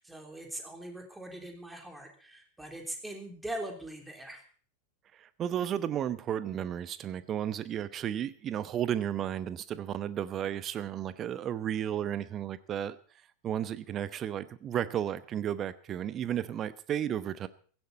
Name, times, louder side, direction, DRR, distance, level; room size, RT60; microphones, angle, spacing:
voice 1, 0.0-4.4, right 1 dB, 5° right, 3 dB, 3.6 m, -41 dB
voice 2, 5.1-13.0 13.4-17.5, right 10 dB, 30° right, 15 dB, 1.0 m, -33 dB
16.5 x 15.5 x 4.2 m, 0.43 s
figure-of-eight pair, 90°, 0 cm